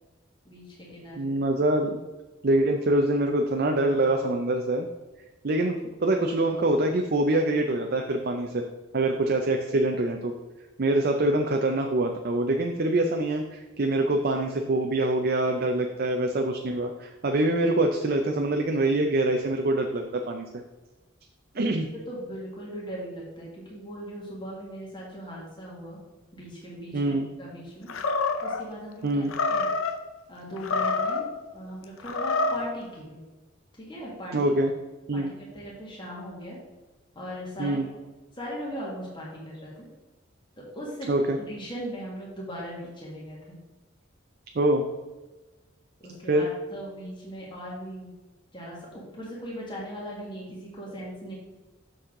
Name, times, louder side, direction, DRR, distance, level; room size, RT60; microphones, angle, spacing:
voice 1, 0.4-1.4 22.1-26.0 26.3-27.9 28.4-29.7 30.3-31.3 31.5-33.2 33.8-34.5 35.1-36.6 37.1-37.8 38.3-39.8 40.6-41.1 41.4-43.6 46.0-48.1 48.5-51.3, equal, 25° left, -5 dB, 1.7 m, -39 dB
voice 2, 1.2-2.0 2.4-4.9 5.4-8.6 8.9-10.3 10.8-20.5 21.5-21.9 26.9-27.3 29.0-29.3 34.3-34.7 35.1-35.3 37.6-37.9 41.1-41.4 44.5-44.8 46.3-46.5, right 2 dB, 50° right, 4 dB, 0.5 m, -25 dB
Animal, 27.9-28.6 29.3-29.9 30.6-31.3 32.0-32.7, left 3 dB, 90° left, 0.7 m, -27 dB
7.0 x 6.3 x 3.7 m, 1.2 s
head